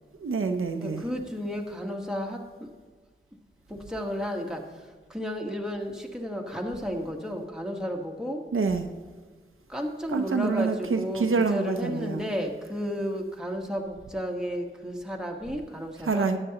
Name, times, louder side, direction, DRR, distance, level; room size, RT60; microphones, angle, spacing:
voice 1, 0.2-1.0 8.5-8.9 10.1-12.3 16.0-16.4, right 4 dB, 75° right, 6 dB, 0.7 m, -26 dB
voice 2, 0.8-2.7 3.7-8.4 9.7-16.3, equal, 5° right, 1 dB, 1.3 m, -33 dB
13.5 x 9.8 x 2.9 m, 1.5 s
wide cardioid pair, 60°, 21 cm